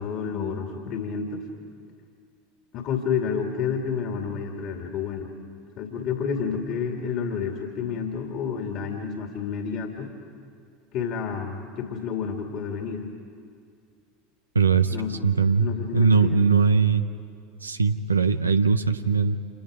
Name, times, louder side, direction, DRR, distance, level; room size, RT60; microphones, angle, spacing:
voice 1, 0.0-1.4 2.7-5.3 5.8-10.1 10.9-13.1 14.9-15.1 15.6-16.5, left 6 dB, 45° left, 3 dB, 2.4 m, -30 dB
voice 2, 14.5-15.0 15.2-15.7 15.9-17.0 17.6-19.4, right 5 dB, 85° right, 10 dB, 0.8 m, -20 dB
29.5 x 27.0 x 5.0 m, 2.3 s
figure-of-eight pair, 75°, 0 cm